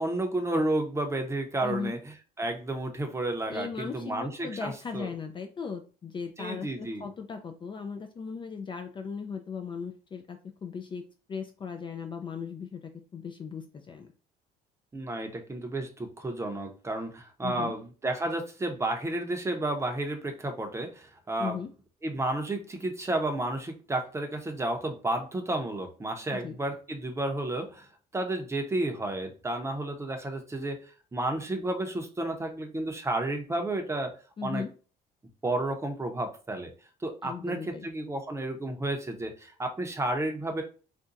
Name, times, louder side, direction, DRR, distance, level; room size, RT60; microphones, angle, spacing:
voice 1, 0.0-2.0 2.4-5.1 6.4-7.1 14.9-21.6 22.0-27.9 28.1-34.1 34.4-34.6 35.4-36.7 37.0-40.6, right 2 dB, 15° right, 4 dB, 0.7 m, -32 dB
voice 2, 1.6-2.0 3.5-14.1 17.4-17.7 21.4-21.7 26.3-26.6 34.4-34.7 37.2-37.9, left 6 dB, 30° left, 6 dB, 0.3 m, -37 dB
2.5 x 2.2 x 3.8 m, 0.36 s
cardioid pair, 110°, 17 cm